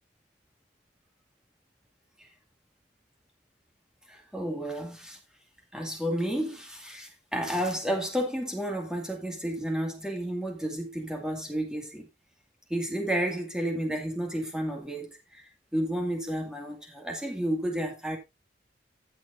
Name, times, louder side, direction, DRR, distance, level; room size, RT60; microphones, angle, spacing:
voice 1, 4.1-5.2 5.7-12.1 12.7-15.4 15.7-18.2, right 1 dB, 5° right, 2.1 m, -31 dB
16.0 x 6.3 x 2.6 m
head